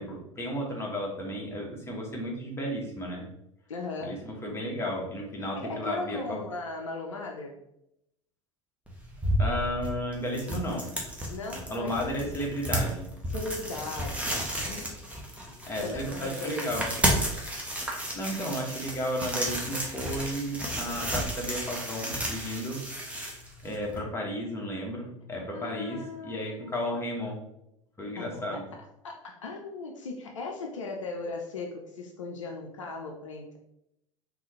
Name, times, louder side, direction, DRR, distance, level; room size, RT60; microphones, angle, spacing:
voice 1, 0.0-3.3 4.0-6.4 9.4-10.9 11.7-13.1 15.7-16.9 18.1-22.8 23.6-27.4 28.0-28.6, equal, 15° left, -2 dB, 1.2 m, -33 dB
voice 2, 3.7-4.3 5.5-7.6 11.3-12.3 13.3-14.9 15.8-16.7 25.5-26.7 28.2-33.6, left 3 dB, 75° left, 2 dB, 0.5 m, -38 dB
sound 1, 8.9-24.0, equal, 10° right, 1.0 m, -32 dB
3.8 x 2.9 x 3.1 m, 0.81 s
figure-of-eight pair, 70°, 16 cm